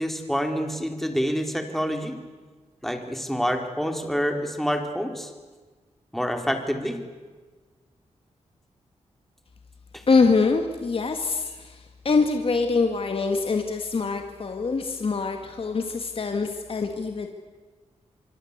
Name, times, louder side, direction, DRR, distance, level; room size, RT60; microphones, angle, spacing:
voice 1, 0.0-2.2 2.8-5.3 6.1-7.0 9.9-10.0, equal, ahead, 4 dB, 3.9 m, -27 dB
voice 2, 10.1-17.3, left 4 dB, 50° left, 5 dB, 2.1 m, -24 dB
25.5 x 24.5 x 8.3 m, 1.4 s
wide cardioid pair, 90°, 12 cm